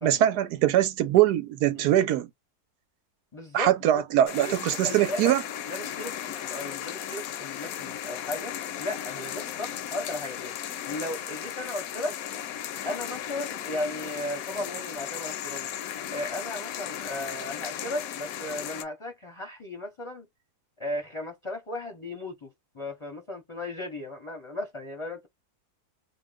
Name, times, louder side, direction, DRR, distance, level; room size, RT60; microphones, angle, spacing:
voice 1, 0.0-2.3 3.5-5.4, right 12 dB, 85° right, 1.1 m, -22 dB
voice 2, 3.3-4.0 4.4-5.3 5.7-10.6 10.9-12.2 12.8-15.7 16.1-20.3 20.8-25.3, left 1 dB, 30° left, 0.6 m, -36 dB
sound 1, 4.3-18.8, left 10 dB, 70° left, 0.9 m, -36 dB
2.7 x 2.2 x 3.4 m
omnidirectional pair, 1.7 m